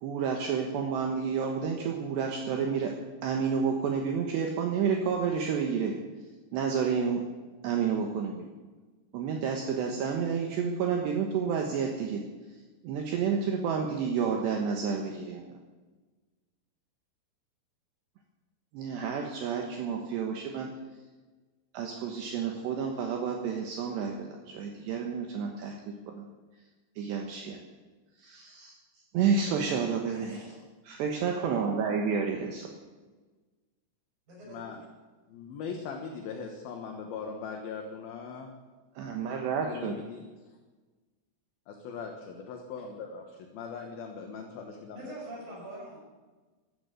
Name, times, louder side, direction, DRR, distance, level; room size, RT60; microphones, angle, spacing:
voice 1, 0.0-2.9 3.2-5.9 6.5-7.2 7.6-8.3 9.1-12.2 12.8-15.4 18.7-20.7 21.7-26.3 27.0-27.6 28.2-28.8 29.1-30.4 30.9-32.7 39.0-39.9, right 6 dB, 70° right, 2 dB, 3.2 m, -30 dB
voice 2, 30.1-30.7 34.3-34.6 44.9-46.0, right 1 dB, 45° right, -3 dB, 7.3 m, -44 dB
voice 3, 34.5-34.8 35.3-38.5 39.6-40.2 41.8-45.2, left 5 dB, 65° left, 2 dB, 2.7 m, -40 dB
14.5 x 12.5 x 8.1 m, 1.3 s
omnidirectional pair, 5.7 m